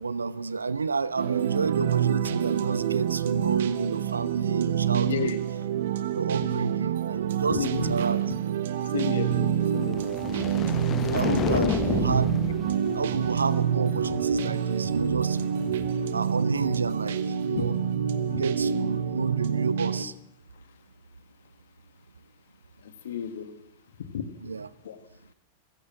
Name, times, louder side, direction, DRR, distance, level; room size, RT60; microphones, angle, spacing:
voice 1, 0.0-5.4 6.1-8.2 11.1-12.4 12.9-15.6 16.1-17.8 18.4-20.1 24.4-24.7, right 4 dB, 75° right, 0.7 m, -30 dB
sound 1, 1.2-20.0, right 9 dB, 60° right, 1.1 m, -27 dB
voice 2, 7.5-7.9 8.9-10.0 11.3-11.7 17.5-17.7 22.8-23.5 24.0-24.2 24.8-25.0, left 9 dB, 60° left, 2.0 m, -32 dB
sound 2, 9.6-13.8, left 10 dB, 30° left, 0.9 m, -32 dB
sound 3, 10.9-16.0, right 4 dB, 30° right, 4.2 m, -49 dB
26.0 x 16.5 x 6.1 m
figure-of-eight pair, 90°, 0 cm